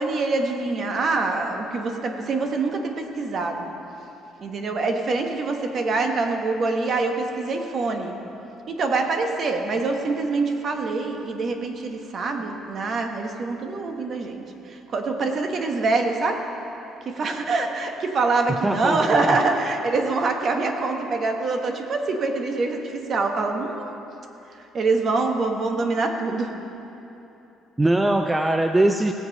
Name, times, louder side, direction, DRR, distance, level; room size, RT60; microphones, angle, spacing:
voice 1, 0.0-3.7 4.4-8.1 8.7-16.4 17.0-23.9 24.7-26.5, right 3 dB, 40° right, 4 dB, 1.1 m, -25 dB
voice 2, 18.6-19.4 27.8-29.1, right 1 dB, 10° right, 6 dB, 0.4 m, -21 dB
17.0 x 7.7 x 5.2 m, 3.0 s
cardioid pair, 140°, 0 cm